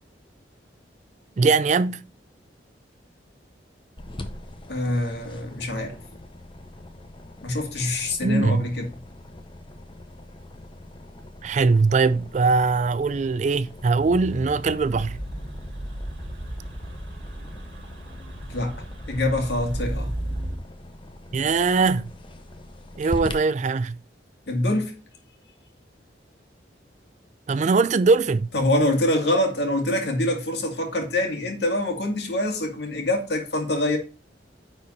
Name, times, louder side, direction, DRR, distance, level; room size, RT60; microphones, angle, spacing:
voice 1, 1.4-2.0 8.2-8.7 11.4-15.2 21.3-22.1 23.0-24.0 27.5-28.5, right 4 dB, 40° right, 0.4 m, -21 dB
sound 1, 4.0-23.3, left 1 dB, 30° left, 0.8 m, -42 dB
voice 2, 4.7-6.0 7.4-8.9 18.5-20.1 24.5-25.0 28.5-34.0, left 1 dB, 65° left, 2.2 m, -25 dB
sound 2, 14.0-20.6, right 1 dB, 75° right, 2.0 m, -34 dB
9.6 x 4.3 x 4.1 m
head